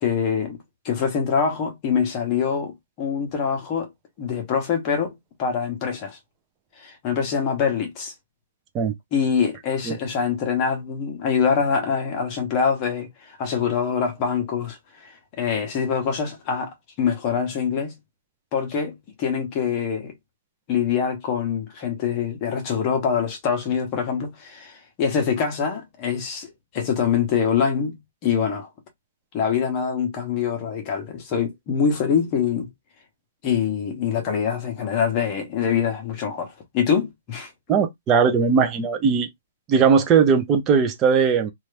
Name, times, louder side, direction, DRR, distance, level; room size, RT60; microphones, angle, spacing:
voice 1, 0.0-0.6 0.8-3.9 4.2-5.1 5.4-6.2 6.8-8.1 9.1-18.0 18.5-20.1 20.7-27.9 28.2-28.7 29.3-32.7 33.4-37.5, left 7 dB, 20° left, 0.8 m, -24 dB
voice 2, 37.7-39.3 39.7-41.5, right 6 dB, 15° right, 0.4 m, -19 dB
2.7 x 2.3 x 3.2 m
hypercardioid pair, 180°, 0 cm